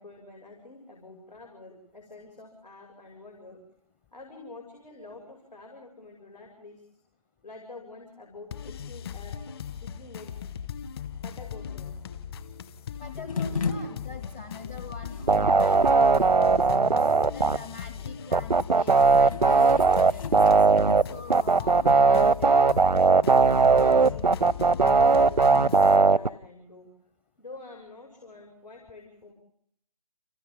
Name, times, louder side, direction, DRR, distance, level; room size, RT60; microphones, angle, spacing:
voice 1, 0.0-3.6 4.1-6.9 7.4-9.4 9.8-10.4 11.2-12.0 13.1-13.6 23.5-26.9 27.4-29.3, left 3 dB, 80° left, 0 dB, 6.2 m, -47 dB
sound 1, 8.5-26.0, left 8 dB, 35° left, 1.5 m, -38 dB
voice 2, 13.0-22.6, left 5 dB, 15° left, 10 dB, 0.8 m, -44 dB
sound 2, 13.3-24.6, left 5 dB, 55° left, 3.1 m, -39 dB
sound 3, 15.3-17.6 18.3-21.0 21.3-26.3, right 4 dB, 85° right, 0.8 m, -19 dB
30.0 x 28.5 x 3.7 m, 0.71 s
figure-of-eight pair, 150°, 21 cm